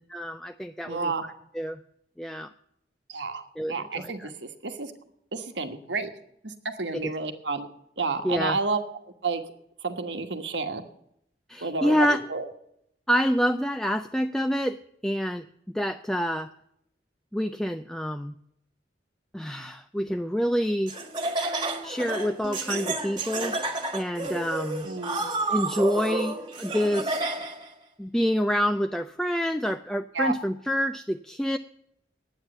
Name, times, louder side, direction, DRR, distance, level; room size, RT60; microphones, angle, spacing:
voice 1, 0.1-1.1 1.6-1.8 2.2-2.5 3.6-4.3 6.9-7.1 8.2-8.6 11.5-12.2 13.1-14.8 15.0-16.5 17.3-18.3 19.3-20.9 21.8-23.6 23.9-24.9 25.5-27.2 28.0-31.6, equal, 5° left, 7 dB, 0.4 m, -27 dB
voice 2, 0.9-1.2 3.1-4.9 5.3-6.1 6.4-7.7 8.0-8.8 9.2-9.4 9.8-10.8 11.6-12.5 24.8-25.2 30.1-30.3, right 4 dB, 80° right, 7 dB, 1.3 m, -30 dB
Laughter, 20.9-27.7, right 2 dB, 25° right, 1.7 m, -31 dB
9.8 x 9.0 x 7.9 m, 0.74 s
head